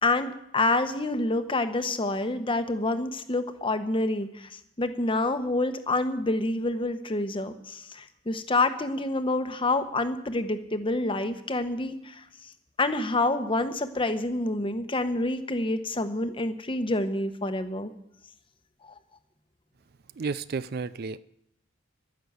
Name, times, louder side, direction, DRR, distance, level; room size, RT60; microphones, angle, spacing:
voice 1, 0.0-12.5 12.8-17.9 18.8-18.9, left 2 dB, 25° left, 1.0 m, -28 dB
voice 2, 20.2-21.2, right 4 dB, 50° right, 0.4 m, -32 dB
11.5 x 10.5 x 8.0 m
head